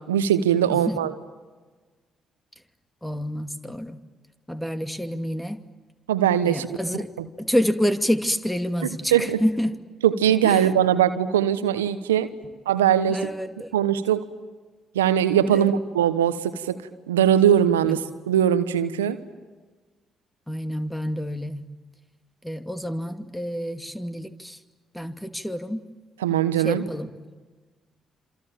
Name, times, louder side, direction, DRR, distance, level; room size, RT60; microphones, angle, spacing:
voice 1, 0.1-1.1 6.1-6.7 7.2-7.3 9.1-9.4 10.0-12.3 12.7-13.3 13.7-14.3 14.9-16.8 17.1-19.2 26.2-26.8, right 10 dB, 90° right, 12 dB, 1.0 m, -21 dB
voice 2, 0.7-1.0 3.0-4.0 4.5-5.6 6.4-7.1 7.4-9.8 10.4-10.7 13.1-13.7 15.5-15.7 17.8-18.0 20.5-21.7 22.4-24.6 24.9-25.9 26.6-27.1, equal, 5° left, 9 dB, 2.5 m, -28 dB
27.0 x 27.0 x 7.4 m, 1.3 s
hypercardioid pair, 45°, 0 cm